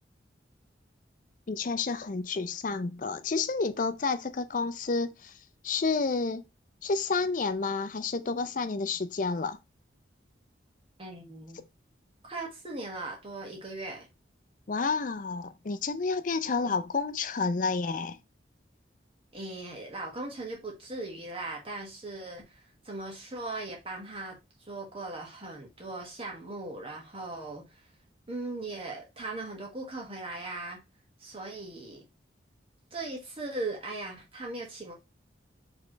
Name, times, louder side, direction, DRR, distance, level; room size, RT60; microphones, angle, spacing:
voice 1, 1.5-5.3 5.6-6.4 6.8-9.6 14.7-18.2, left 4 dB, 45° left, 0.5 m, -30 dB
voice 2, 11.0-11.6 12.2-14.1 16.6-16.7 19.3-27.9 28.3-30.8 31.2-32.0 32.9-34.9, right 2 dB, 30° right, 1.5 m, -39 dB
4.8 x 3.3 x 3.0 m
head